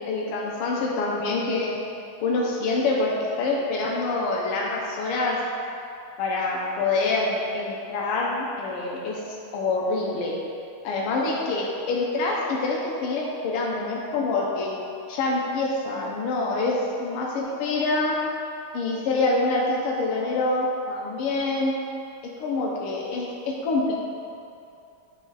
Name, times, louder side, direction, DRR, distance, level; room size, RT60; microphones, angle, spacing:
voice 1, 0.1-1.8 2.2-5.4 6.2-10.3 10.8-14.7 15.1-18.2 18.7-21.7 22.2-23.9, left 3 dB, 80° left, -3 dB, 1.6 m, -26 dB
9.0 x 3.1 x 3.9 m, 2.6 s
omnidirectional pair, 2.4 m